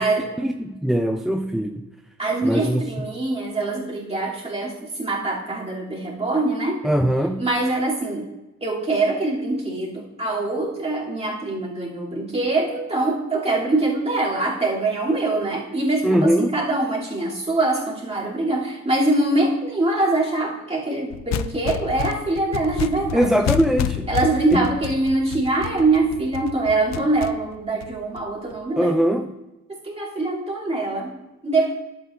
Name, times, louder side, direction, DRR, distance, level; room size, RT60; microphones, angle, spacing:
voice 1, 0.4-1.9 2.4-2.8 6.8-7.5 16.0-16.6 23.1-24.1 24.5-24.6 28.8-29.3, equal, ahead, 7 dB, 0.3 m, -21 dB
voice 2, 2.2-6.8 7.4-8.3 8.6-23.3 24.1-29.1 29.7-31.7, right 2 dB, 20° right, -5 dB, 2.8 m, -23 dB
sound 1, 21.1-28.5, left 12 dB, 65° left, 0.5 m, -30 dB
11.5 x 8.1 x 2.5 m, 1.0 s
cardioid pair, 90°, 30 cm